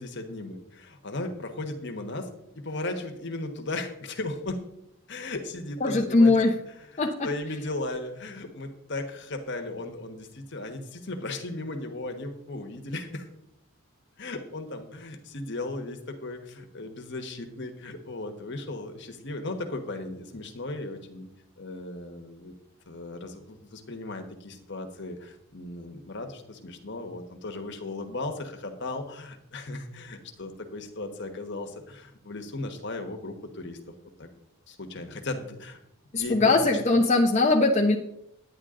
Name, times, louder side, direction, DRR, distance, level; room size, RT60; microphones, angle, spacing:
voice 1, 0.0-2.3 2.5-4.6 5.1-6.3 6.9-13.3 14.2-21.3 21.6-22.5 22.9-33.8 34.2-34.3 34.7-35.8 36.1-36.6 36.9-37.0, left 2 dB, 55° left, 5 dB, 1.3 m, -36 dB
voice 2, 5.8-6.6 7.0-7.3 36.1-38.0, left 2 dB, 30° left, 0 dB, 0.8 m, -21 dB
10.0 x 9.9 x 3.8 m, 0.80 s
head